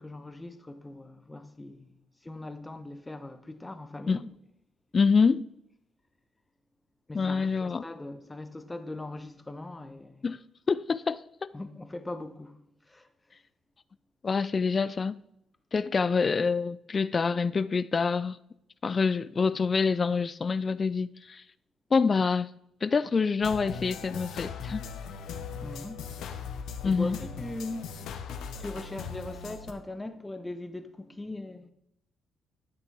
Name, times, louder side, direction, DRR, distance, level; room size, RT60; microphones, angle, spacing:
voice 1, 0.0-1.9 2.2-4.3 7.1-10.2 11.5-13.1 25.4-26.1 26.8-27.9 28.6-31.7, left 2 dB, 15° left, 1.0 m, -40 dB
voice 2, 4.9-5.5 7.1-7.8 10.2-10.4 10.7-11.5 14.2-15.2 15.7-18.4 18.8-21.4 21.9-22.5 22.8-24.8 26.8-27.2, left 5 dB, 35° left, 0.3 m, -26 dB
sound 1, 23.4-29.7, left 6 dB, 80° left, 1.0 m, -39 dB
13.5 x 5.9 x 3.4 m
cardioid pair, 90°, 0 cm